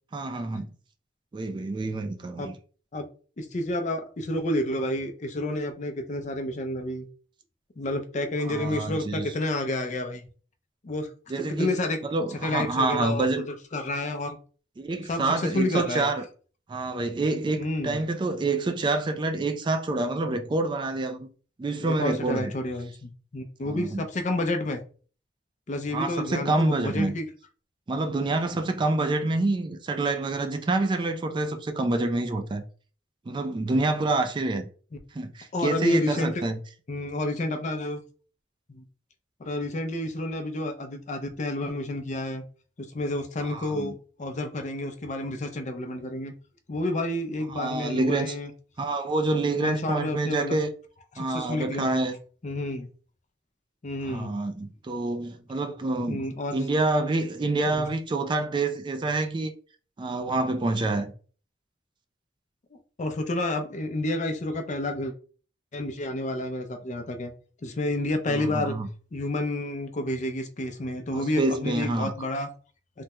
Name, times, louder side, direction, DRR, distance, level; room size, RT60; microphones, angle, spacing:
voice 1, 0.1-0.7 1.3-2.5 8.4-9.3 11.3-11.7 12.0-13.5 14.8-16.3 16.7-21.3 21.6-22.5 23.6-24.1 25.9-27.1 27.9-32.6 33.3-34.7 35.1-36.6 43.4-43.9 47.5-48.4 48.8-50.7 51.2-52.2 54.0-56.2 56.5-59.5 60.0-61.1 68.3-68.9 71.1-72.1, right 2 dB, 25° right, 0.3 m, -27 dB
voice 2, 3.4-7.1 7.8-10.2 10.8-11.1 11.4-12.0 12.4-14.4 15.1-16.1 17.6-18.0 21.8-24.8 25.7-27.3 35.5-36.4 36.9-38.0 38.7-38.8 39.4-42.4 42.9-46.3 46.7-48.5 49.6-50.6 51.2-52.0 52.4-52.9 53.8-54.3 56.1-56.6 57.8-57.9 62.7-65.1 65.7-67.3 67.6-68.8 69.1-72.5, left 1 dB, 40° left, 0.5 m, -30 dB
3.4 x 2.1 x 2.9 m
head